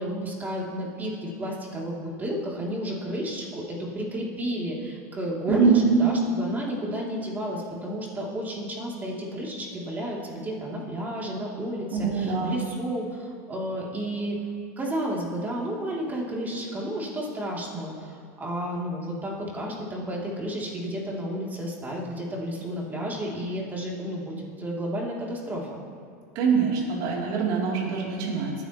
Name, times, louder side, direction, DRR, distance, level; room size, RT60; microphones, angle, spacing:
voice 1, 0.0-14.4 14.8-25.7, equal, 20° right, -3 dB, 3.0 m, -32 dB
voice 2, 5.5-6.0 11.9-12.6 26.3-28.5, right 5 dB, 55° right, -4 dB, 3.3 m, -23 dB
20.0 x 9.9 x 3.1 m, 2.2 s
hypercardioid pair, 110°, 9 cm